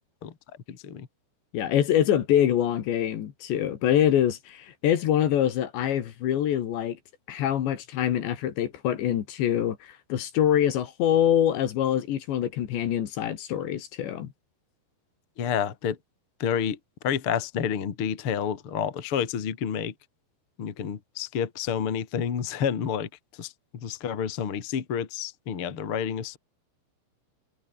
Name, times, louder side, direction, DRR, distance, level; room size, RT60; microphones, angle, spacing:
voice 1, 0.7-1.1 15.4-16.0 16.4-16.8 17.0-19.9 20.6-23.1 23.4-23.5 23.8-26.4, left 8 dB, 40° left, 2.2 m, -29 dB
voice 2, 1.5-7.0 7.3-14.3, left 10 dB, 70° left, 4.2 m, -25 dB
omnidirectional pair, 5.5 m